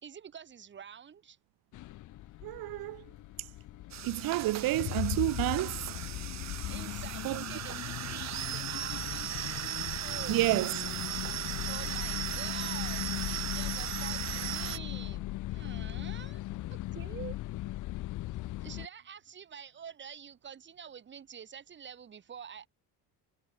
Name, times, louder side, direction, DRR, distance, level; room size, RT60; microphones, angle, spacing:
voice 1, 0.0-1.4 6.7-9.5 10.0-11.0 11.6-16.4 16.7-17.4 18.6-22.7, right 7 dB, 30° right, 3.0 m, -47 dB
sound 1, 1.7-18.9, left 16 dB, 50° left, 0.8 m, -38 dB
voice 2, 2.4-3.0 4.0-5.8 7.2-7.4 10.3-10.7, right 18 dB, 60° right, 1.3 m, -29 dB
sound 2, 3.9-14.8, right 12 dB, 45° right, 1.6 m, -38 dB
cardioid pair, 165°, 39 cm